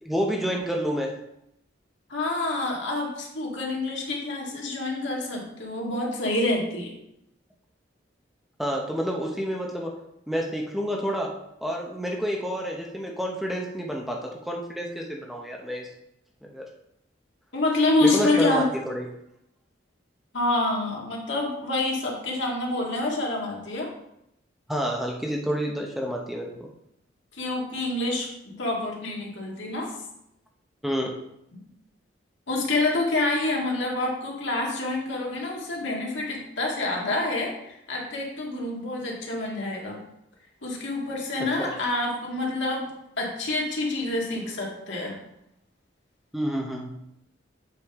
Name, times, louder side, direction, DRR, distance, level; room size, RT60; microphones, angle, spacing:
voice 1, 0.0-1.2 8.6-10.0 10.3-15.9 16.4-16.6 18.0-19.1 24.7-26.7 30.8-31.2 41.4-41.7 46.3-46.9, equal, ahead, 0 dB, 0.7 m, -29 dB
voice 2, 2.1-6.9 17.5-18.7 20.3-23.9 27.3-30.0 31.5-31.6 32.5-40.0 40.6-42.9 43.2-45.2, left 2 dB, 75° left, -2 dB, 1.9 m, -27 dB
8.0 x 5.1 x 3.5 m, 0.80 s
head